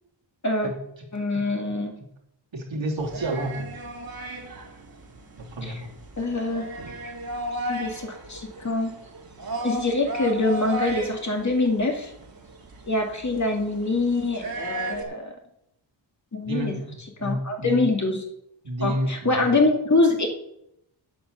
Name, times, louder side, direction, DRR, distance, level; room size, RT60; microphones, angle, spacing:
voice 1, 1.1-2.0 5.6-5.8 6.2-6.6 7.7-8.9 9.6-12.1 12.9-15.3 16.3-16.7 17.2-18.2 18.8-20.3, left 2 dB, 35° left, 2 dB, 2.3 m, -24 dB
voice 2, 2.5-3.7 5.4-5.8 16.4-16.9 17.2-17.8 18.6-19.5, right 1 dB, 75° right, -2 dB, 3.2 m, -30 dB
sound 1, 3.0-15.0, right 1 dB, 50° right, 2.2 m, -35 dB
9.3 x 8.7 x 6.8 m, 0.79 s
wide cardioid pair, 115°, 46 cm